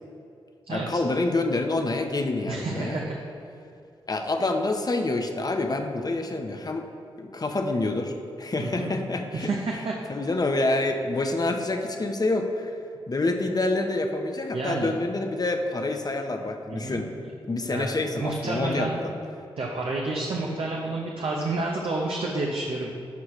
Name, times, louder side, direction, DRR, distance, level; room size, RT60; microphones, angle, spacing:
voice 1, 0.7-3.0 4.1-6.8 7.2-9.5 10.1-12.7 13.1-19.1, left 2 dB, 40° left, 4 dB, 0.9 m, -27 dB
voice 2, 2.5-3.2 8.6-8.9 9.3-10.0 14.5-14.9 16.7-17.0 17.7-17.9 18.2-19.0 19.6-22.9, right 3 dB, 60° right, -2 dB, 0.9 m, -29 dB
13.0 x 4.7 x 3.2 m, 2.5 s
supercardioid pair, 40°, 11 cm